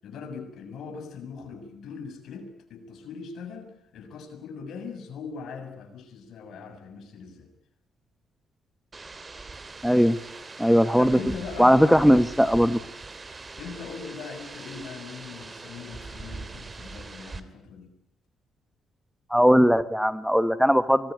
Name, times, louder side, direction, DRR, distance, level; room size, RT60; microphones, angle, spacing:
voice 1, 0.0-7.5 11.0-12.2 13.6-17.9, left 5 dB, 70° left, 5 dB, 6.9 m, -40 dB
sound 1, 8.9-17.4, right 3 dB, 30° right, 2.6 m, -41 dB
voice 2, 9.8-10.2 10.6-11.2 11.6-12.8 19.3-21.1, equal, ahead, 14 dB, 1.1 m, -19 dB
24.5 x 20.5 x 9.4 m, 0.74 s
cardioid pair, 90°, 0 cm